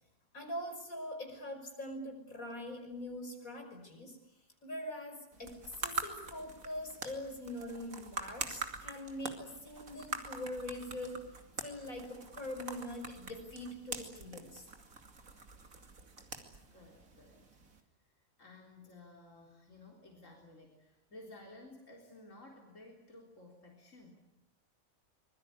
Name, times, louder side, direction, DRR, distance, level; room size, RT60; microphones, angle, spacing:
voice 1, 0.3-4.2 4.6-11.3 11.6-14.7, left 1 dB, 85° left, 4 dB, 6.2 m, -43 dB
sound 1, 5.3-17.8, right 4 dB, 80° right, 3.1 m, -45 dB
voice 2, 16.7-17.5 18.1-24.2, left 2 dB, 65° left, 1 dB, 4.2 m, -55 dB
25.5 x 22.0 x 9.7 m, 0.83 s
omnidirectional pair, 1.4 m